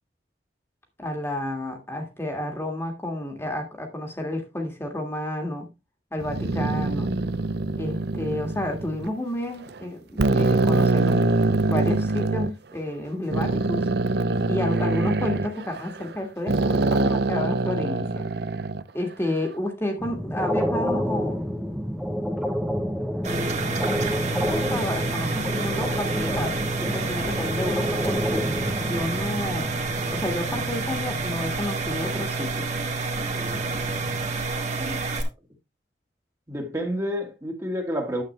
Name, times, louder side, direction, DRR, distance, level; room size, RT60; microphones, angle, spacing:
voice 1, 1.0-5.7 6.1-7.1 7.8-11.2 11.7-13.8 14.5-18.3 18.9-21.4 24.5-28.4 28.8-29.7 30.1-32.7, left 1 dB, 15° left, 1.8 m, -30 dB
sound 1, 6.2-9.1 9.7-9.8 10.2-12.5 13.3-16.2 16.5-18.8, right 3 dB, 65° right, 0.6 m, -24 dB
sound 2, 20.0-34.3, equal, ahead, 1.0 m, -30 dB
sound 3, 23.2-35.2, right 3 dB, 40° right, 2.0 m, -29 dB
voice 2, 34.8-35.1 36.5-38.2, equal, 15° right, 1.8 m, -29 dB
9.7 x 7.9 x 3.2 m
head